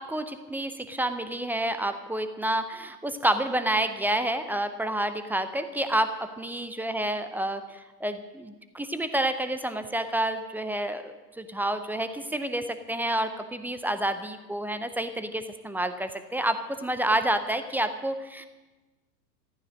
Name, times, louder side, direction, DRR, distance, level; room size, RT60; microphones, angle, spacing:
voice 1, 0.0-18.5, right 1 dB, 5° right, 10 dB, 0.5 m, -29 dB
14.0 x 14.0 x 6.4 m, 1.2 s
figure-of-eight pair, 100°, 50 cm